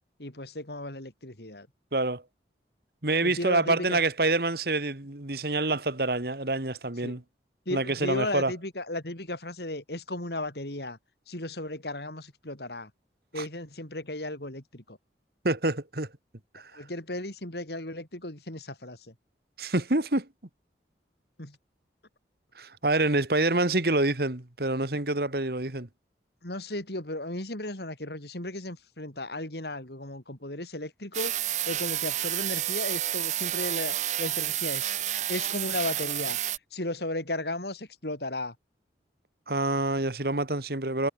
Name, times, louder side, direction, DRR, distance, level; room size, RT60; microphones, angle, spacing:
voice 1, 0.2-1.7 3.2-4.0 7.0-7.2 7.7-11.0 11.3-12.9 13.3-15.0 16.7-19.1 21.4-21.6 26.4-31.4 31.7-34.9 35.3-38.6, left 1 dB, 65° left, 3.9 m, -35 dB
voice 2, 1.9-2.2 3.0-7.2 7.7-8.5 13.4-13.5 15.4-16.1 16.5-16.7 19.6-20.3 22.6-25.9 39.5-41.1, right 2 dB, 55° right, 2.0 m, -27 dB
sound 1, 31.1-36.6, right 13 dB, 40° right, 0.5 m, -30 dB
head